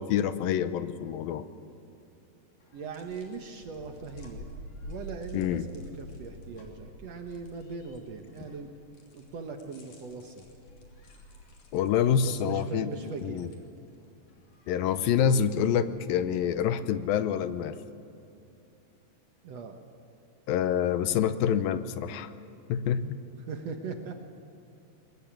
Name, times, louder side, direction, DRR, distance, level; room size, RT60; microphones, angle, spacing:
voice 1, 0.0-1.4 5.3-5.6 11.7-12.9 13.2-13.5 14.7-17.8 20.5-22.3 22.7-23.2, left 8 dB, 80° left, 12 dB, 2.5 m, -27 dB
sound 1, 2.6-16.7, equal, 55° left, 4.1 m, -50 dB
voice 2, 2.7-4.5 4.8-8.7 9.1-10.4 12.3-13.8 19.4-19.8 23.5-24.1, right 4 dB, 60° right, 5 dB, 2.0 m, -40 dB
22.0 x 21.0 x 9.0 m, 2.8 s
omnidirectional pair, 4.2 m